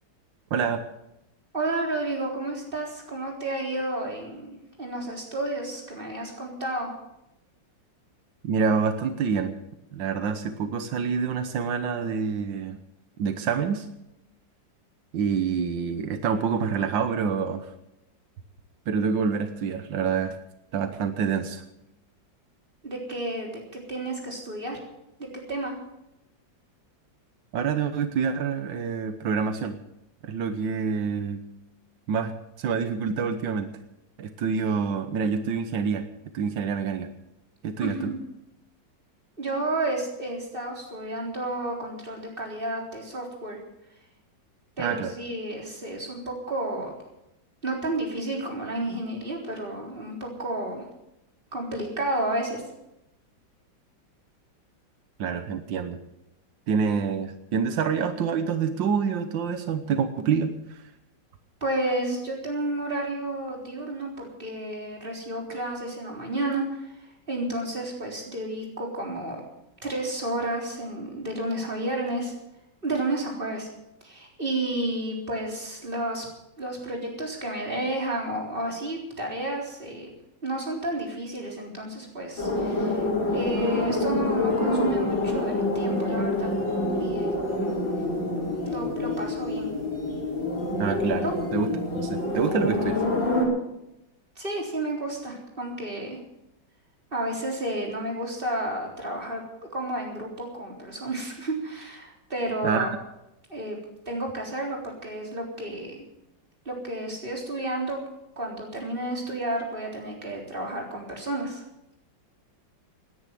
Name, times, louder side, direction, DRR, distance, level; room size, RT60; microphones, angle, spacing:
voice 1, 0.5-0.8 8.4-9.5 9.9-12.8 13.2-13.9 15.1-17.7 18.9-20.4 20.7-21.6 27.5-29.8 30.2-31.4 32.1-32.3 32.6-33.7 34.2-36.1 36.3-37.1 37.6-38.1 44.8-45.1 55.2-56.0 56.7-60.8 90.8-93.0 102.6-103.0, right 6 dB, 85° right, 9 dB, 1.7 m, -27 dB
voice 2, 1.5-6.9 22.8-24.8 25.2-25.7 37.8-38.2 39.4-43.6 44.8-46.9 47.6-50.8 51.5-52.6 61.6-69.4 69.8-72.3 72.8-73.7 74.0-76.3 76.6-80.1 80.4-86.5 87.0-87.3 88.7-89.7 91.2-91.3 94.4-96.2 97.1-99.4 99.7-102.9 103.5-103.8 104.1-106.0 106.7-108.0 108.4-111.6, right 1 dB, 30° right, 0 dB, 4.1 m, -31 dB
sound 1, 82.4-93.4, left 2 dB, 85° left, 6.4 m, -27 dB
18.0 x 10.5 x 7.5 m, 0.87 s
omnidirectional pair, 2.0 m